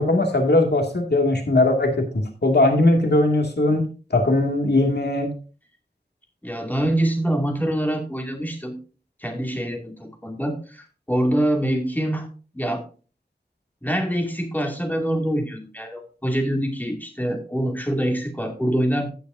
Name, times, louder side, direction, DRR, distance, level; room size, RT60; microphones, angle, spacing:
voice 1, 0.0-3.8 4.1-5.3, left 2 dB, 75° left, 3 dB, 2.3 m, -19 dB
voice 2, 6.4-8.8 9.2-12.3 12.5-12.8 13.8-19.1, right 1 dB, 10° left, 3 dB, 2.4 m, -25 dB
16.0 x 6.9 x 2.7 m, 0.36 s
wide cardioid pair, 60°, 17 cm